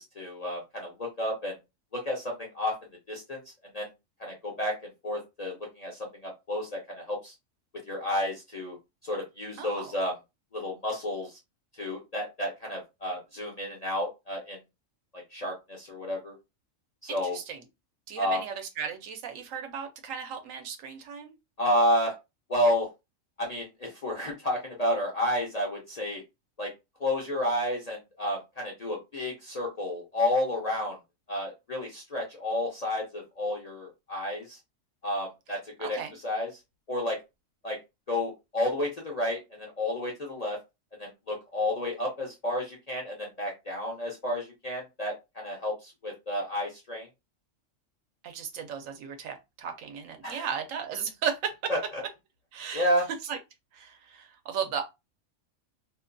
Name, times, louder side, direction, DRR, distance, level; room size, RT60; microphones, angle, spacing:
voice 1, 0.0-1.5 1.9-2.7 3.1-3.4 3.7-3.9 4.2-4.7 5.0-7.3 7.9-8.8 9.0-10.1 10.5-11.4 11.8-14.6 15.1-16.3 17.0-17.4 18.2-18.4 21.6-22.1 22.5-22.9 23.4-26.2 26.6-26.7 27.0-31.0 31.3-34.6 35.0-36.0 36.2-36.5 36.9-37.2 37.6-37.8 38.1-40.6 41.0-47.1 50.2-50.5 51.7-51.8 52.7-53.1, left 1 dB, 50° left, 0.5 m, -31 dB
voice 2, 9.6-9.9 17.1-17.6 18.1-21.4 35.8-36.1 48.2-51.5 52.5-52.9 53.2-53.4 53.7-54.9, right 7 dB, 75° right, 1.0 m, -35 dB
2.7 x 2.2 x 2.5 m
omnidirectional pair, 1.4 m